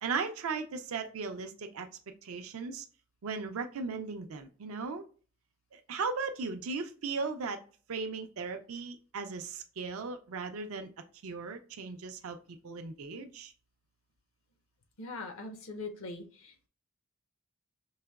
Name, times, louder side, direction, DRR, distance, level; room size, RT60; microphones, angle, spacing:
voice 1, 0.0-1.9 2.2-2.8 3.2-5.0 5.7-7.6 7.9-10.9 11.2-12.4 12.6-13.5, right 4 dB, 70° right, 6 dB, 0.4 m, -37 dB
voice 2, 15.0-16.7, left 3 dB, 65° left, 5 dB, 0.6 m, -42 dB
4.7 x 2.8 x 2.3 m, 0.39 s
head